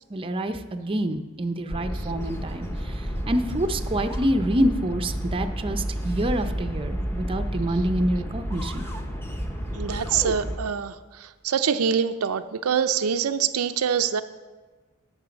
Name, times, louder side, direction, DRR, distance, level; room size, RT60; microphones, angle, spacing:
voice 1, 0.1-8.8, right 1 dB, 25° right, 8 dB, 0.6 m, -27 dB
sound 1, 1.7-10.6, equal, 10° left, 0.9 m, -31 dB
voice 2, 9.7-14.2, right 7 dB, 80° right, 9 dB, 0.5 m, -25 dB
11.5 x 7.9 x 5.2 m, 1.3 s
head